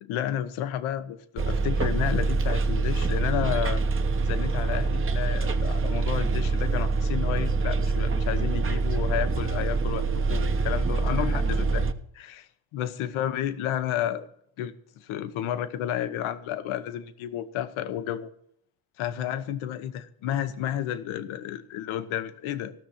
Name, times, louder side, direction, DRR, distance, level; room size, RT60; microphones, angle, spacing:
voice 1, 0.0-3.8 4.2-11.9 12.1-14.3 14.6-18.3 19.0-22.7, left 11 dB, 80° left, 12 dB, 1.1 m, -31 dB
Bus, 1.4-11.9, right 3 dB, 25° right, 0.9 m, -25 dB
15.5 x 6.4 x 7.2 m, 0.69 s
cardioid pair, 110°, 48 cm